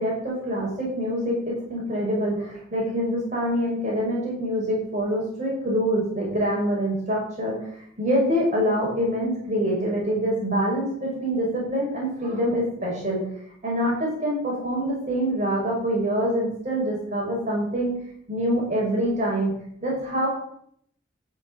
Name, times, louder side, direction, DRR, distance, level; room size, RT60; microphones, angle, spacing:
voice 1, 0.0-7.6 8.0-13.2 13.6-17.9 18.3-19.5 19.8-20.3, equal, 40° right, -3 dB, 6.1 m, -25 dB
13.0 x 6.8 x 8.6 m, 0.69 s
head